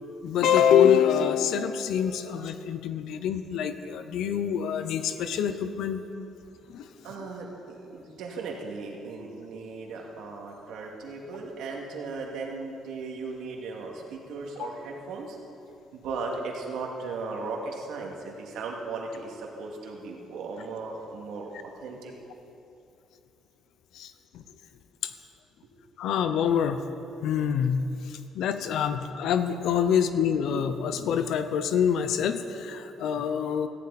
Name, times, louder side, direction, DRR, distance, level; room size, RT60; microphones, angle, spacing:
voice 1, 0.2-6.0 6.7-6.8 14.6-14.7 24.0-24.1 26.0-26.8 27.2-27.8 28.4-33.7, left 8 dB, 70° left, 10 dB, 0.8 m, -25 dB
voice 2, 7.0-15.4 15.9-22.1 25.2-25.3, right 3 dB, 80° right, 0 dB, 2.4 m, -37 dB
17.5 x 14.5 x 4.2 m, 2.7 s
cardioid pair, 145°, 0 cm